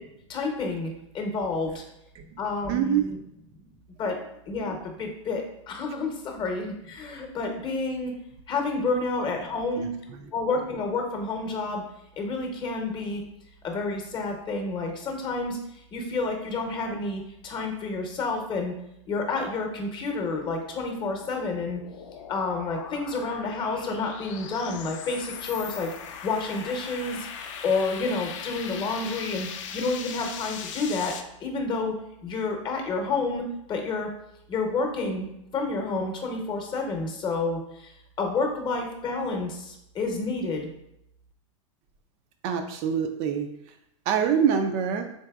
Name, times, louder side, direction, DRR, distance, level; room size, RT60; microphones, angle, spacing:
voice 1, 0.3-1.8 2.4-3.2 4.0-4.2 4.5-8.1 8.5-9.9 10.3-11.8 12.2-13.2 13.6-18.7 19.1-21.8 22.3-25.9 26.2-27.3 27.6-29.5 29.7-31.1 31.4-32.0 32.2-33.4 33.7-34.1 34.5-37.9 38.2-40.7, left 3 dB, 30° left, 3 dB, 0.8 m, -29 dB
voice 2, 2.7-3.1 9.8-10.3 42.4-43.8 44.1-45.1, right 7 dB, 45° right, 6 dB, 0.4 m, -26 dB
sound 1, 21.0-31.2, left 7 dB, 65° left, 0.4 m, -40 dB
3.9 x 3.2 x 2.3 m, 0.79 s
hypercardioid pair, 115°, 17 cm